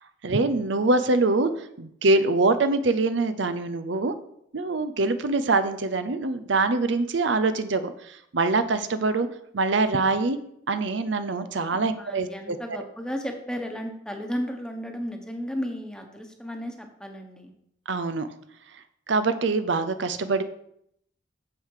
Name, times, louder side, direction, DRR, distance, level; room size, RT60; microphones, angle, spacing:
voice 1, 0.2-4.1 4.5-9.3 9.5-10.4 10.7-12.6 17.9-18.3 19.1-20.4, right 3 dB, 70° right, 11 dB, 0.6 m, -24 dB
voice 2, 11.7-17.5, equal, 5° left, 3 dB, 1.2 m, -34 dB
9.1 x 7.4 x 4.9 m, 0.73 s
head